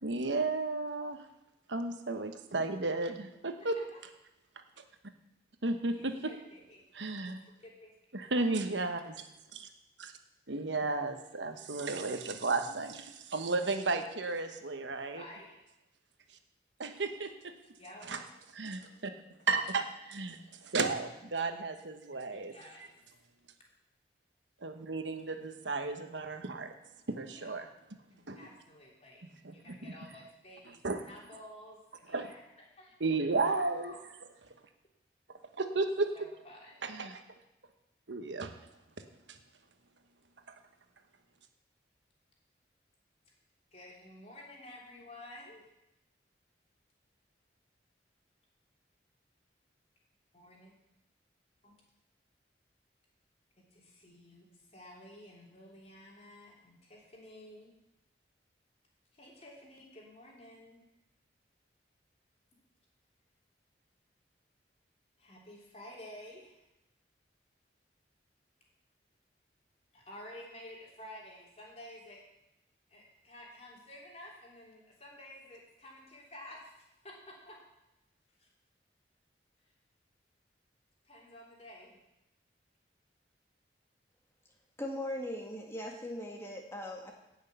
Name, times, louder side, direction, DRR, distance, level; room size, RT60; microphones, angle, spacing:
voice 1, 0.0-1.2 1.7-3.8 4.8-4.9 5.6-6.3 6.9-7.4 8.1-9.2 9.5-9.7 10.0-10.1 10.5-15.3 16.8-17.5 18.0-18.2 18.5-19.1 19.5-22.5 22.8-22.9 24.6-26.7 27.1-27.7 28.3-28.5 29.2-30.1 30.6-31.1 32.1-32.3 33.0-34.0 35.6-36.3 36.8-37.2 38.1-38.5 39.3-39.4 40.5-40.6, right 3 dB, 85° right, 7 dB, 1.2 m, -34 dB
voice 2, 5.9-6.8 7.6-7.9 8.3-8.5 15.1-15.6 17.8-18.1 22.3-22.9 28.1-29.2 29.5-31.8 32.1-32.4 32.8-32.9 33.4-34.0 36.2-36.7 43.7-45.6 50.3-50.7 54.0-54.4 54.7-57.7 59.2-60.8 65.2-66.5 69.9-72.2 72.9-76.6 77.0-77.1 77.5-77.6 81.1-82.0, left 1 dB, 35° left, -2 dB, 3.3 m, -51 dB
voice 3, 84.8-87.1, left 1 dB, 15° left, 1 dB, 1.9 m, -39 dB
17.5 x 6.4 x 6.8 m, 0.92 s
head